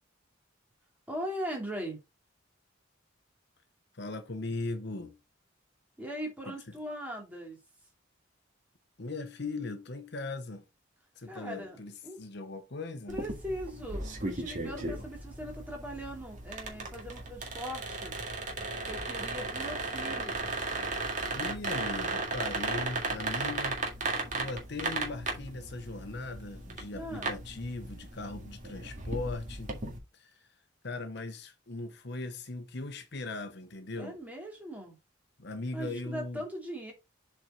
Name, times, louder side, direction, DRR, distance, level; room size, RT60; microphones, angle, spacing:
voice 1, 1.1-2.0 6.0-7.6 11.3-11.8 12.0-12.2 13.1-18.2 18.8-20.4 26.9-27.4 34.0-35.0 35.7-36.9, equal, 10° right, 2.7 m, -40 dB
voice 2, 3.9-5.2 6.5-6.8 9.0-10.6 11.2-13.2 21.3-23.8 24.4-29.7 30.1-30.3 30.8-34.2 35.4-36.4, left 2 dB, 55° left, 1.0 m, -39 dB
sound 1, 13.1-30.0, right 3 dB, 40° right, 1.9 m, -36 dB
7.7 x 4.6 x 3.9 m
head